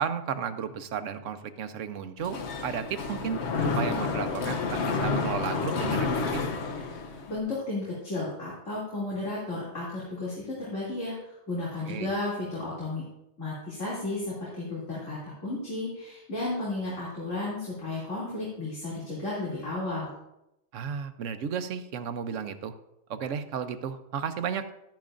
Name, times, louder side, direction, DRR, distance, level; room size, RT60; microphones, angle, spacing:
voice 1, 0.0-4.6 4.9-6.4 11.9-12.1 20.7-22.7 23.1-24.7, right 7 dB, 80° right, 10 dB, 1.1 m, -33 dB
Mechanisms, 2.2-7.4, left 4 dB, 65° left, 1.0 m, -30 dB
voice 2, 7.3-13.0 13.4-20.1, left 2 dB, 85° left, -7 dB, 3.2 m, -33 dB
13.0 x 10.5 x 2.5 m, 0.87 s
omnidirectional pair, 1.3 m